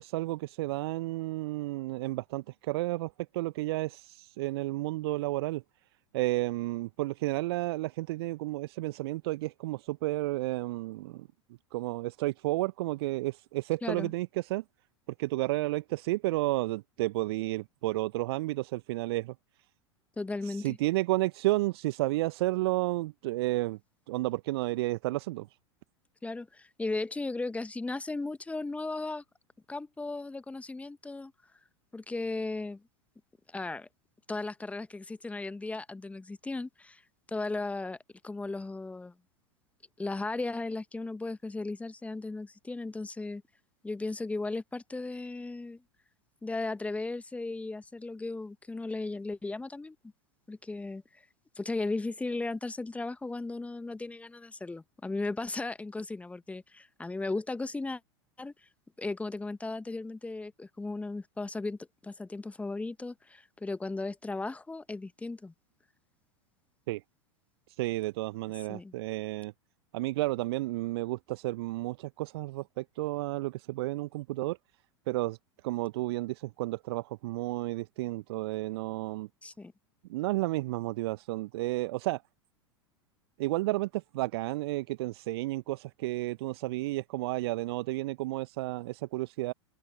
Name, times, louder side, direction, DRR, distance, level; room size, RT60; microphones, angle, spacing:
voice 1, 0.0-5.6 6.1-11.3 11.7-14.6 15.2-19.3 20.4-23.8 24.1-25.5 66.9-67.0 67.8-69.5 69.9-74.6 75.1-75.4 75.6-79.3 80.1-82.2 83.4-89.5, right 19 dB, 55° right, 1.0 m, -32 dB
voice 2, 20.2-20.8 26.2-29.2 29.7-31.3 31.9-32.8 33.5-33.9 34.3-37.0 37.3-38.0 38.2-39.1 40.0-43.4 43.8-45.8 46.4-50.0 50.5-51.2 51.6-58.0 58.4-58.5 59.0-65.5 68.7-68.9 79.4-79.7, left 3 dB, 10° left, 1.3 m, -36 dB
figure-of-eight pair, 85°, 16 cm